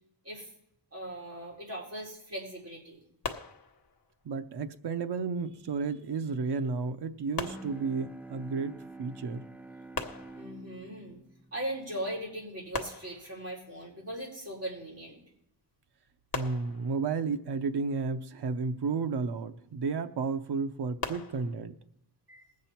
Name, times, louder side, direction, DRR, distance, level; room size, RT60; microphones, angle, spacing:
voice 1, 0.9-3.0 10.3-11.2 11.5-15.2 22.3-22.4, right 1 dB, 35° right, -4 dB, 4.3 m, -39 dB
sound 1, 3.2-4.2 7.4-8.4 9.9-10.9 12.7-13.7 16.3-17.3 21.0-21.6, left 4 dB, 60° left, 1.0 m, -40 dB
voice 2, 4.2-9.5 16.3-21.8, right 4 dB, 80° right, 8 dB, 0.8 m, -32 dB
Bowed string instrument, 7.4-12.8, right 2 dB, 5° right, 0.5 m, -48 dB
20.5 x 7.5 x 4.4 m, 0.74 s
wide cardioid pair, 165°, 40 cm